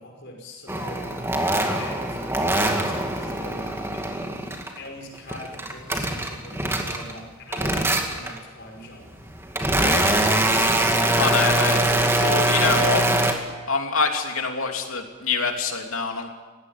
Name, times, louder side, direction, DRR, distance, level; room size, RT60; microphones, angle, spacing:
voice 1, 0.0-4.0 4.8-9.1, left 1 dB, 55° left, 1 dB, 5.6 m, -42 dB
sound 1, 0.7-4.8 5.2-7.2 7.5-8.4 9.0-13.3, right 1 dB, 10° right, 2.2 m, -23 dB
voice 2, 9.7-10.2 11.1-11.8 12.2-13.2 13.7-16.3, left 4 dB, 85° left, 3 dB, 3.0 m, -25 dB
20.0 x 16.0 x 9.9 m, 1.3 s
head